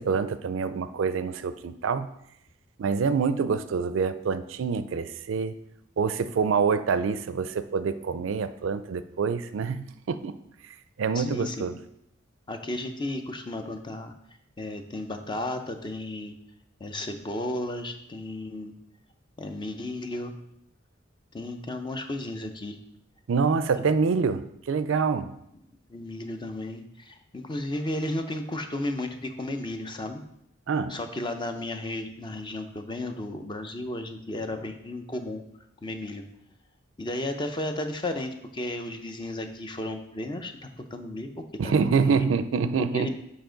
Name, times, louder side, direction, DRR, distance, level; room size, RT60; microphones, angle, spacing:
voice 1, 0.0-2.1 2.8-5.5 6.0-10.3 11.0-11.7 23.3-25.3 30.7-31.0 41.6-43.1, right 5 dB, 70° right, 13 dB, 0.4 m, -26 dB
voice 2, 11.1-11.7 12.5-14.1 14.6-16.4 16.8-18.8 19.4-20.3 21.3-22.8 23.8-23.9 25.9-30.2 30.9-35.4 35.8-36.2 37.0-42.3 42.9-43.1, left 1 dB, 25° left, 7 dB, 0.6 m, -34 dB
7.1 x 5.1 x 3.8 m, 0.77 s
head